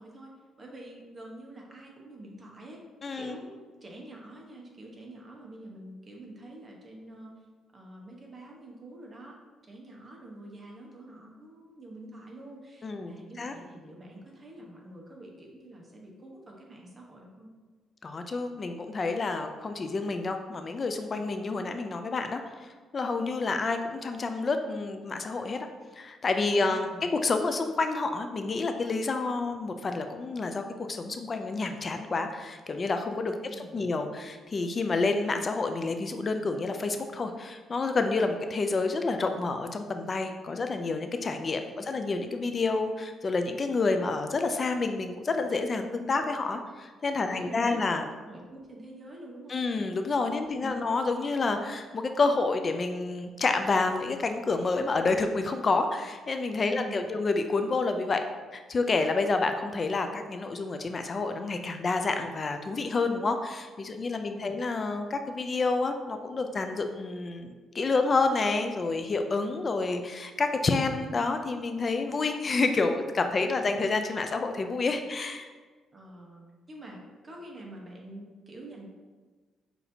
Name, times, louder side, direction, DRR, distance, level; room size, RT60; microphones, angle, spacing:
voice 1, 0.0-2.8 3.1-7.3 7.7-9.4 9.6-17.5 26.6-27.1 33.5-33.9 41.8-42.2 47.3-49.6 50.4-50.7 56.6-57.0 64.2-64.6 73.4-73.5 75.9-78.9, right 1 dB, 35° right, -1 dB, 1.0 m, -46 dB
voice 2, 3.0-3.4 12.8-13.1 13.4-13.6 18.0-25.6 25.9-48.0 49.5-58.2 58.5-75.5, left 3 dB, 40° left, 6 dB, 0.3 m, -29 dB
5.8 x 2.7 x 2.7 m, 1.4 s
cardioid pair, 90°, 0 cm